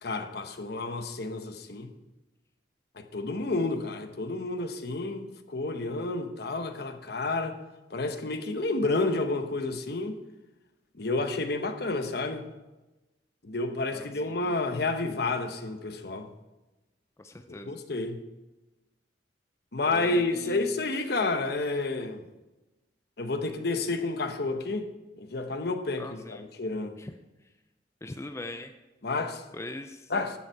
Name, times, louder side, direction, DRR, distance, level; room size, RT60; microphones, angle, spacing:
voice 1, 0.0-1.9 3.0-7.6 7.9-10.2 11.0-12.5 13.4-16.3 17.5-18.2 19.7-22.2 23.2-24.9 25.2-27.0 29.0-29.4 30.1-30.4, left 3 dB, 60° left, 0.9 m, -30 dB
voice 2, 13.9-14.4 17.2-17.8 19.9-20.8 26.0-26.4 27.0-27.1 28.0-28.7 29.5-30.4, left 1 dB, 15° left, 0.4 m, -41 dB
13.0 x 7.2 x 4.6 m
head